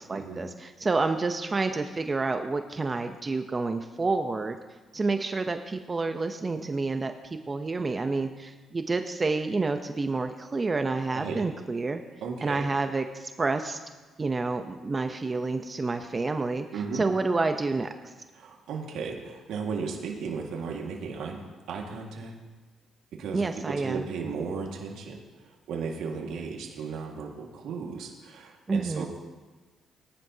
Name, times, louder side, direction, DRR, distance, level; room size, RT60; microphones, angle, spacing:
voice 1, 0.0-4.6 4.9-12.0 12.4-13.8 14.2-16.7 16.9-18.1 23.3-24.0 28.7-29.1, right 3 dB, 30° right, 7 dB, 0.7 m, -29 dB
voice 2, 12.2-12.7 16.7-17.1 18.3-21.4 21.7-22.3 23.1-25.2 25.7-29.1, right 5 dB, 80° right, 0 dB, 1.8 m, -35 dB
20.0 x 10.5 x 2.8 m, 1.3 s
cardioid pair, 90°, 0 cm